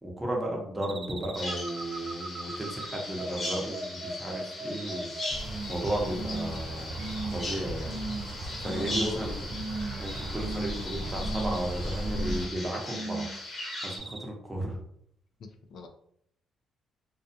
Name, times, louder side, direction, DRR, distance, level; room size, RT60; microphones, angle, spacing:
voice 1, 0.0-5.1 5.7-8.0 8.6-9.5 10.0-13.4 13.8-14.8, right 1 dB, 15° right, -1 dB, 0.8 m, -34 dB
sound 1, 0.8-5.8 6.1-6.6 7.0-7.5 7.9-8.3 8.6-9.2 9.5-10.0 10.4-10.9 11.2-11.7 12.0-12.5 12.9-13.4 13.7-14.2, right 3 dB, 40° right, 0.3 m, -37 dB
Bird vocalization bird call bird song, 1.3-14.0, left 1 dB, 40° left, 0.9 m, -39 dB
sound 2, 5.3-12.5, equal, 60° right, 0.8 m, -37 dB
voice 2, 8.6-9.3 15.7-15.9, left 3 dB, 65° left, 5 dB, 0.4 m, -38 dB
2.3 x 2.3 x 2.6 m, 0.68 s
cardioid pair, 90°, 0 cm